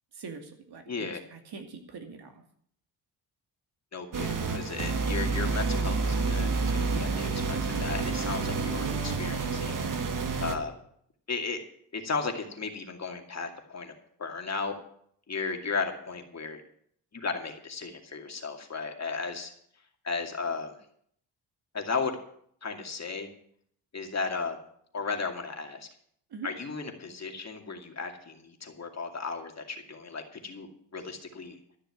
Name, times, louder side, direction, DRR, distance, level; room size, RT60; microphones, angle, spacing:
voice 1, 0.1-2.4 26.3-26.5, right 5 dB, 60° right, 4 dB, 2.5 m, -43 dB
voice 2, 0.9-1.2 3.9-9.8 10.4-10.7 11.3-11.6 11.9-13.9 14.2-14.8 15.3-16.6 17.1-19.5 20.0-20.8 21.7-22.2 22.6-23.3 23.9-24.6 24.9-25.9 26.4-31.6, left 4 dB, 35° left, 4 dB, 2.4 m, -35 dB
sound 1, 4.1-10.6, right 4 dB, 45° right, 1.7 m, -29 dB
13.0 x 6.7 x 9.5 m, 0.65 s
cardioid pair, 85°, 43 cm